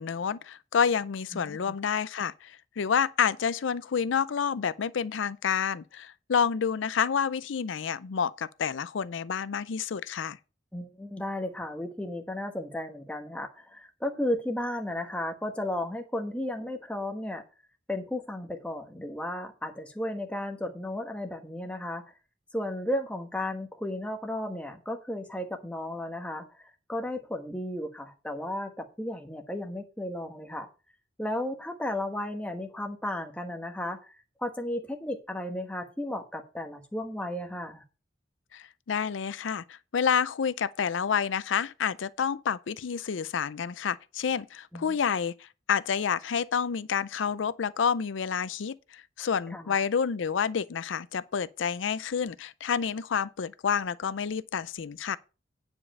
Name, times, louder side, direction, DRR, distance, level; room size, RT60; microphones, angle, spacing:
voice 1, 0.0-10.4 38.5-55.2, left 7 dB, 90° left, 0.5 m, -29 dB
voice 2, 1.3-1.8 10.7-17.4 17.9-22.0 22.5-26.5 26.9-30.7 31.2-34.1 34.4-37.8 44.7-44.9 49.5-49.8, left 1 dB, 5° left, 1.1 m, -34 dB
9.7 x 5.3 x 5.4 m
head